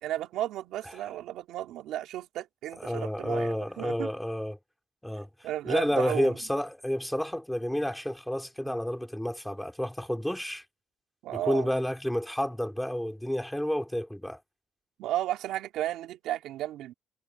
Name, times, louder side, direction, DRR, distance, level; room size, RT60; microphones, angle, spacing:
voice 1, 0.0-4.1 5.4-6.4 11.2-11.7 15.0-16.9, right 13 dB, 90° right, 3.6 m, -34 dB
voice 2, 2.8-4.6 5.0-5.3 5.6-10.6 11.3-14.4, equal, 5° left, 3.9 m, -30 dB
cardioid pair, 90°, 0 cm